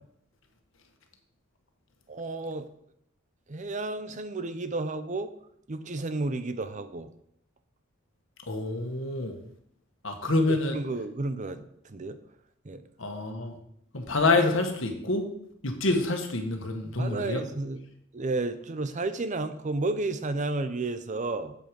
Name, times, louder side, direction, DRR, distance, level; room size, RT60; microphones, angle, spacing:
voice 1, 2.1-2.7 3.5-5.3 5.7-7.1 10.5-11.6 11.9-12.2 12.7-12.8 17.0-17.8 18.1-21.5, right 2 dB, 35° right, 11 dB, 0.6 m, -32 dB
voice 2, 8.5-9.3 10.0-10.8 13.0-13.6 13.9-15.2 15.6-17.4, left 2 dB, 70° left, 4 dB, 1.6 m, -27 dB
7.9 x 7.7 x 5.2 m, 0.72 s
head